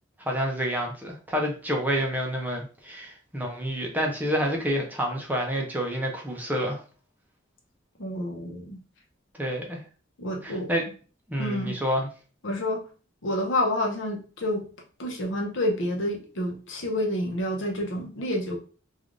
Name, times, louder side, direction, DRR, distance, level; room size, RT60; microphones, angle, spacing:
voice 1, 0.2-6.8 9.4-9.8 10.4-10.8 11.3-12.1, equal, 10° right, 0.5 m, -28 dB
voice 2, 8.0-8.8 10.2-10.7 11.4-11.8 12.4-12.8 13.2-14.6 15.0-18.6, left 1 dB, 70° left, 0.8 m, -28 dB
3.3 x 2.4 x 2.5 m
head